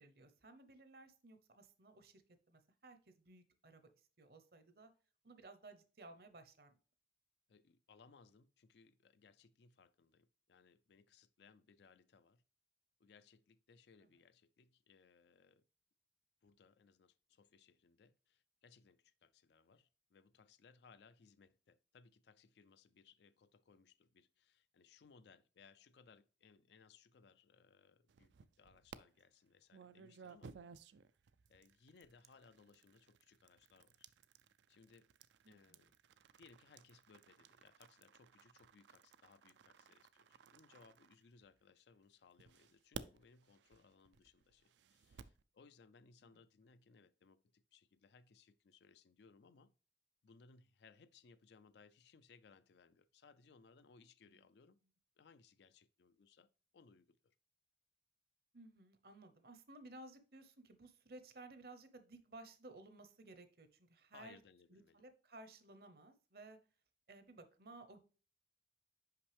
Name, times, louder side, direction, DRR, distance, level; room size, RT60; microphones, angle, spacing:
voice 1, 0.0-2.2 2.5-3.8 4.2-4.9 5.2-6.7 35.4-35.8 46.2-46.4 54.2-54.4 58.5-64.4 64.7-66.6 67.1-68.0, right 2 dB, 55° right, 0.8 m, -57 dB
voice 2, 7.5-12.4 13.0-15.6 16.4-30.6 31.5-34.1 34.7-35.1 35.5-35.9 36.4-49.7 50.2-54.8 55.2-57.4 64.1-65.0, left 5 dB, 70° left, 0.4 m, -66 dB
sound 1, 28.1-29.0 29.7-41.7 42.4-45.4, right 6 dB, 80° right, 0.4 m, -57 dB
5.7 x 5.3 x 3.3 m
head